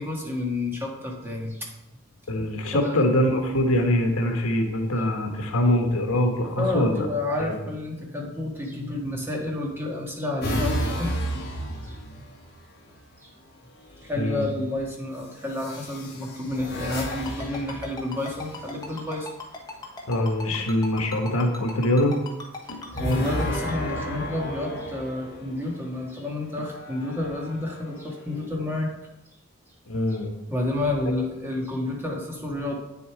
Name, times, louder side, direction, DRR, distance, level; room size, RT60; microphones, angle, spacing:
voice 1, 0.0-1.7 2.7-3.0 6.6-11.2 11.8-12.0 13.2-13.3 14.0-19.3 22.6-28.9 30.1-30.2 30.5-32.8, left 2 dB, 10° right, -2 dB, 1.7 m, -30 dB
voice 2, 2.3-7.1 7.4-7.6 14.2-14.4 20.1-22.2 22.7-22.9 29.9-30.3, left 1 dB, 80° left, 3 dB, 1.2 m, -23 dB
sound 1, 10.4-12.7 13.9-14.4 15.5-18.9 22.9-25.9 26.6-28.5, equal, 45° left, 1.7 m, -32 dB
Ringtone, 17.0-23.7, left 3 dB, 20° left, 1.2 m, -37 dB
8.9 x 7.0 x 4.7 m, 0.95 s
head